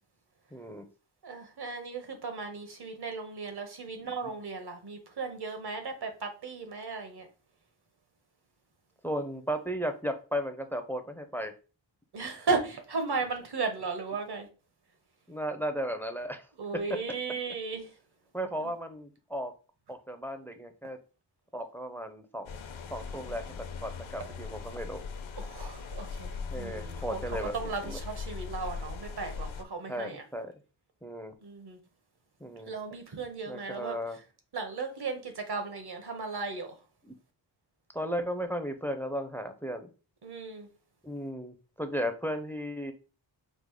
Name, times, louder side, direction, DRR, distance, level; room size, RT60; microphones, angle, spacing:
voice 1, 0.5-0.9 4.0-4.3 9.0-11.5 15.3-17.2 18.3-19.5 19.9-21.0 21.5-22.6 22.9-25.0 26.5-28.0 29.9-30.5 31.0-31.3 32.4-32.7 33.5-34.2 37.0-37.1 37.9-39.9 41.0-42.9, equal, 5° left, 0.5 m, -35 dB
voice 2, 1.2-7.3 12.1-14.5 16.6-17.9 18.6-18.7 25.4-30.2 31.4-31.8 32.7-33.9 34.5-36.7 40.2-40.7, right 4 dB, 55° right, 1.1 m, -36 dB
sound 1, 22.5-29.6, left 5 dB, 80° left, 0.7 m, -40 dB
5.2 x 2.0 x 4.7 m
wide cardioid pair, 120°, 46 cm